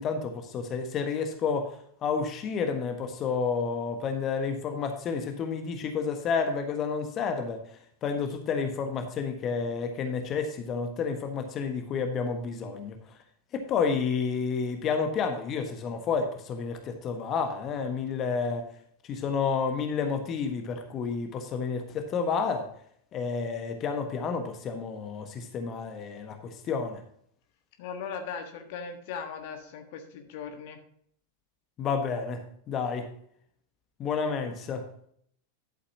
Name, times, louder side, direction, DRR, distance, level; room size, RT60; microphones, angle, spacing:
voice 1, 0.0-7.6 8.0-13.0 13.5-18.6 19.0-22.7 23.1-27.0 31.8-33.1 34.0-34.9, left 5 dB, 30° left, 6 dB, 1.4 m, -30 dB
voice 2, 27.8-30.8, left 6 dB, 50° left, 5 dB, 1.4 m, -38 dB
11.5 x 8.3 x 2.9 m, 0.63 s
figure-of-eight pair, 90°, 0 cm